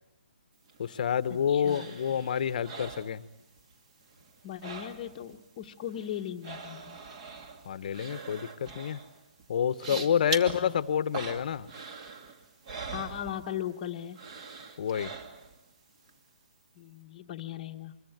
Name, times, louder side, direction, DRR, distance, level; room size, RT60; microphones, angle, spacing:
sound 1, 0.7-3.7 4.0-5.4 5.6-13.8 14.1-15.7 16.1-16.2, right 4 dB, 35° right, 2.6 m, -42 dB
voice 1, 0.8-3.2 7.6-9.0 9.5-11.7 14.8-15.1, left 8 dB, 45° left, 16 dB, 1.0 m, -28 dB
voice 2, 1.5-1.9 4.4-7.0 10.4-10.8 12.9-14.2 16.8-18.0, left 10 dB, 25° left, -2 dB, 1.1 m, -38 dB
26.0 x 23.5 x 9.3 m, 0.87 s
hypercardioid pair, 160°, 6 cm